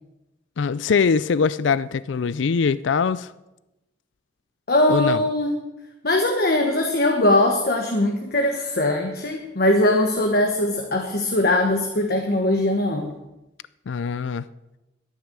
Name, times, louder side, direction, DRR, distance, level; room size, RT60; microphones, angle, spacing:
voice 1, 0.6-3.3 4.9-5.2 13.9-14.4, left 5 dB, 80° left, 0.4 m, -22 dB
voice 2, 4.7-5.5 6.0-13.1, left 1 dB, 55° left, 1.3 m, -21 dB
12.5 x 10.5 x 6.7 m
head